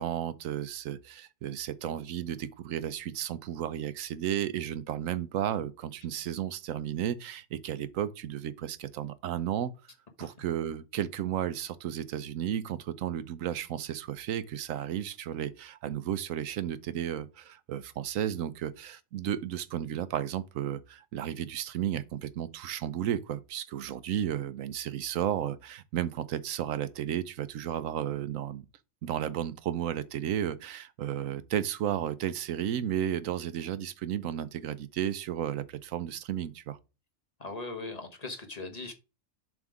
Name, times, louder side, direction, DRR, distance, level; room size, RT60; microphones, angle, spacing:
voice 1, 0.0-9.7 10.2-28.7 29.0-36.8, right 10 dB, 85° right, 1.1 m, -33 dB
voice 2, 37.4-38.9, left 3 dB, 35° left, 1.1 m, -39 dB
7.4 x 3.7 x 4.9 m
omnidirectional pair, 1.3 m